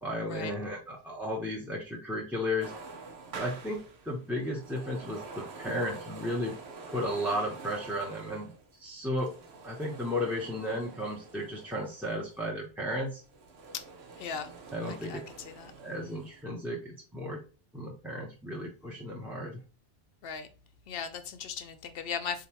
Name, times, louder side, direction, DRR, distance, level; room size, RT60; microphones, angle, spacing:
voice 1, 0.0-2.7 3.4-6.5 6.9-8.5 8.8-9.3 9.6-13.2 14.7-15.2 15.8-17.4 17.7-19.6, left 1 dB, ahead, 0.7 m, -34 dB
sound 1, 2.6-12.4 13.0-16.4, right 4 dB, 80° right, 1.1 m, -47 dB
voice 2, 14.9-15.7 20.2-20.5 20.9-22.5, left 6 dB, 70° left, 0.8 m, -38 dB
4.0 x 3.7 x 2.9 m
omnidirectional pair, 1.1 m